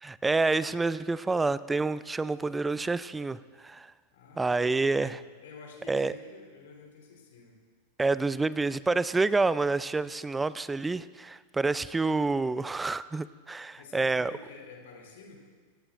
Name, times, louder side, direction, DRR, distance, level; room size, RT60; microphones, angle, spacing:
voice 1, 0.0-3.9 4.4-5.2 5.9-6.2 8.0-14.3, right 3 dB, 10° right, 0.4 m, -28 dB
voice 2, 4.1-7.5 13.8-15.4, left 4 dB, 55° left, 3.8 m, -49 dB
26.0 x 16.5 x 2.5 m
figure-of-eight pair, 90°, 0 cm